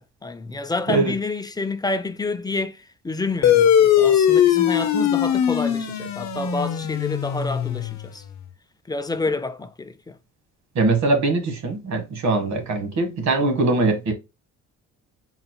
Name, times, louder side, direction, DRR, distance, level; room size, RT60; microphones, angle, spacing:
voice 1, 0.0-8.2 8.9-10.2, left 3 dB, 15° left, 0.4 m, -29 dB
sound 1, 3.4-8.3, left 9 dB, 65° left, 0.7 m, -20 dB
voice 2, 10.7-14.1, right 3 dB, 65° right, 1.2 m, -22 dB
3.9 x 2.0 x 4.4 m
cardioid pair, 90°, 30 cm